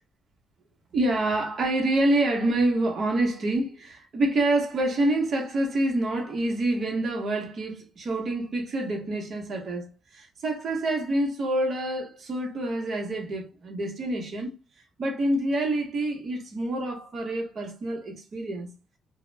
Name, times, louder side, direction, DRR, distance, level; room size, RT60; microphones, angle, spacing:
voice 1, 0.9-14.5 15.0-18.7, right 1 dB, 50° right, 0.8 m, -27 dB
2.2 x 2.0 x 3.1 m
cardioid pair, 90°, 0 cm